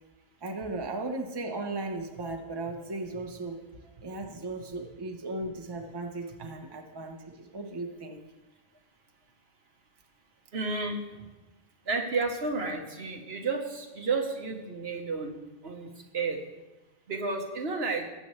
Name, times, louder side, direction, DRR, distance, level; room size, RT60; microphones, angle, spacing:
voice 1, 0.4-3.6 4.0-8.2, right 2 dB, 25° right, 3 dB, 1.0 m, -36 dB
voice 2, 10.5-11.3 11.8-16.4 17.1-18.1, right 3 dB, 75° right, 2 dB, 1.5 m, -32 dB
19.0 x 7.7 x 3.2 m, 1.1 s
omnidirectional pair, 1.1 m